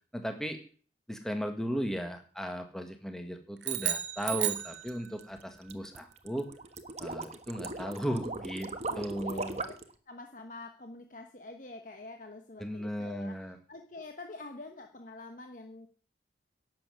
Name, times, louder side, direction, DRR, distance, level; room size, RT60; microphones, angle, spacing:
voice 1, 0.1-0.6 1.1-6.5 7.0-9.6 12.6-13.6, equal, 5° left, 5 dB, 1.6 m, -36 dB
sound 1, 3.6-5.4, right 12 dB, 80° right, 1.7 m, -33 dB
sound 2, 4.0-9.9, right 3 dB, 35° right, 1.2 m, -39 dB
voice 2, 8.8-9.7 10.1-15.9, left 2 dB, 45° left, 5 dB, 1.2 m, -46 dB
11.5 x 7.8 x 9.6 m, 0.42 s
head